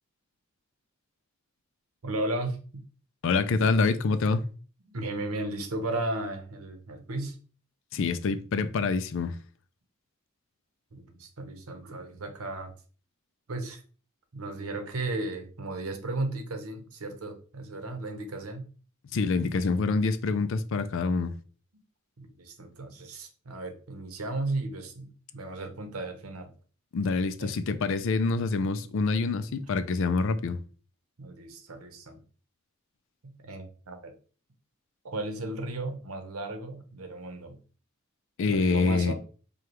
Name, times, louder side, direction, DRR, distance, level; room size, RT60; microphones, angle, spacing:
voice 1, 2.0-2.8 4.8-7.4 10.9-12.7 13.5-13.8 14.3-18.7 22.2-26.5 27.4-27.5 31.2-32.2 33.2-34.1 35.0-37.6 38.5-39.1, right 2 dB, 85° right, 0.9 m, -35 dB
voice 2, 3.2-4.4 7.9-9.4 19.1-21.3 26.9-30.6 38.4-39.1, left 4 dB, 60° left, 0.4 m, -26 dB
4.9 x 2.3 x 3.0 m
head